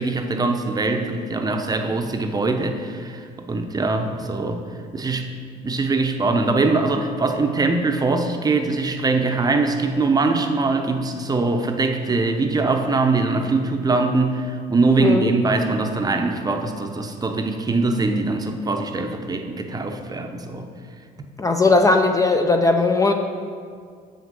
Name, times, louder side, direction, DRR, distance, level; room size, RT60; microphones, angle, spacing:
voice 1, 0.0-4.6 4.9-5.3 5.6-20.7, right 3 dB, 20° right, 5 dB, 0.7 m, -22 dB
voice 2, 21.4-23.1, left 3 dB, 20° left, 5 dB, 0.4 m, -17 dB
6.9 x 6.1 x 5.4 m, 2.1 s
cardioid pair, 110°, 17 cm